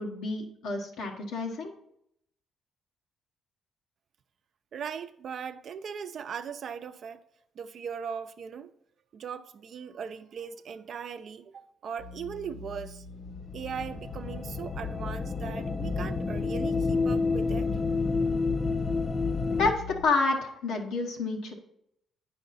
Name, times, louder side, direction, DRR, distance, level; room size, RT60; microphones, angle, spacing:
voice 1, 0.0-1.7 19.5-21.5, left 3 dB, 90° left, 1.1 m, -29 dB
voice 2, 4.7-7.2 7.6-8.7 9.1-13.1 13.5-17.7, right 7 dB, 60° right, 0.6 m, -39 dB
sound 1, 12.0-20.0, left 3 dB, 70° left, 1.0 m, -44 dB
sound 2, 13.3-19.7, left 4 dB, 35° left, 0.5 m, -29 dB
9.1 x 5.7 x 4.1 m
cardioid pair, 90°, 0 cm